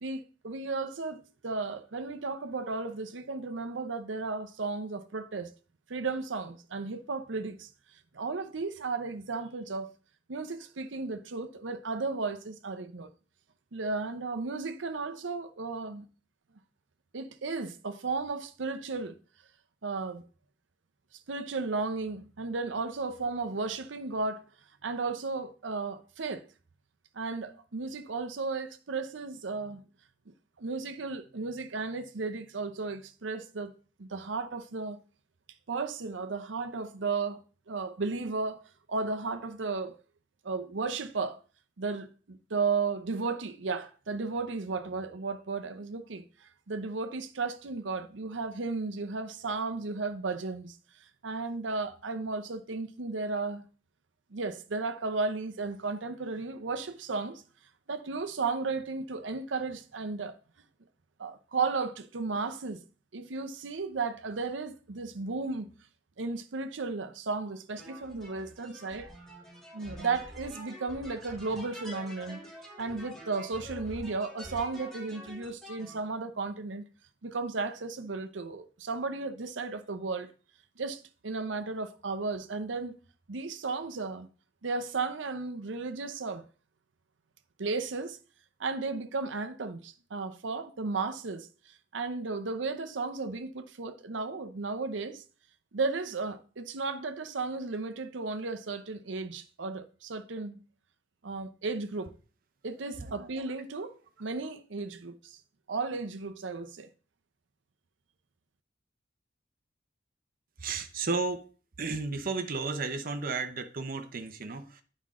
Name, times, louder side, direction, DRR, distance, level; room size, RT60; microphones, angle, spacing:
voice 1, 0.0-5.5 5.9-7.7 8.1-9.9 10.3-13.1 13.7-16.0 17.1-19.1 19.8-20.2 21.3-24.4 24.8-26.4 27.2-29.8 30.6-33.7 34.0-35.0 35.7-37.4 37.7-38.6 38.9-40.0 40.4-41.4 41.8-50.8 51.2-53.7 54.3-57.4 57.9-60.4 61.2-62.8 63.1-65.7 66.2-69.1 69.7-72.4 72.8-76.8 77.2-80.3 80.8-82.9 83.3-84.3 84.6-86.4 87.6-88.2 88.6-95.2 95.7-100.6 101.2-102.1 102.6-105.4 105.7-106.9, right 4 dB, 90° right, 0.7 m, -34 dB
sound 1, 67.8-76.0, equal, 5° left, 2.8 m, -46 dB
voice 2, 102.7-103.1 110.6-111.5 111.8-114.8, right 4 dB, 50° right, 0.8 m, -33 dB
9.5 x 5.3 x 3.7 m
head